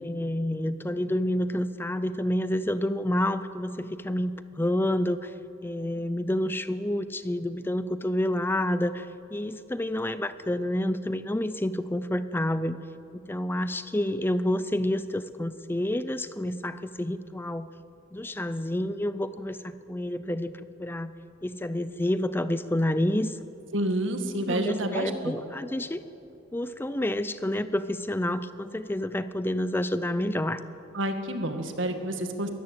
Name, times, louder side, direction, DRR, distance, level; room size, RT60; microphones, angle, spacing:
voice 1, 0.0-5.3 5.6-12.8 13.1-17.7 18.1-20.5 20.8-21.1 21.4-23.4 24.5-26.0 26.5-30.6, left 1 dB, 10° left, 13 dB, 0.5 m, -29 dB
voice 2, 23.7-25.4 30.9-32.5, right 1 dB, 70° right, 6 dB, 2.0 m, -29 dB
22.5 x 13.5 x 8.9 m, 2.9 s
head